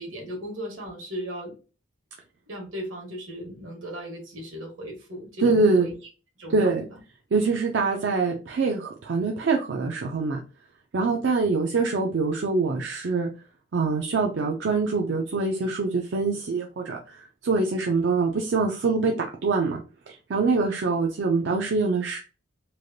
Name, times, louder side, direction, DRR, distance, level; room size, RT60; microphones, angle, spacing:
voice 1, 0.0-1.5 2.5-5.9 6.4-7.0, equal, 80° right, 0 dB, 1.3 m, -37 dB
voice 2, 5.4-5.9 6.5-6.8 7.3-10.4 10.9-13.3 13.7-19.8 20.1-22.2, right 4 dB, 60° right, 1 dB, 0.4 m, -24 dB
3.2 x 2.4 x 2.6 m, 0.34 s
head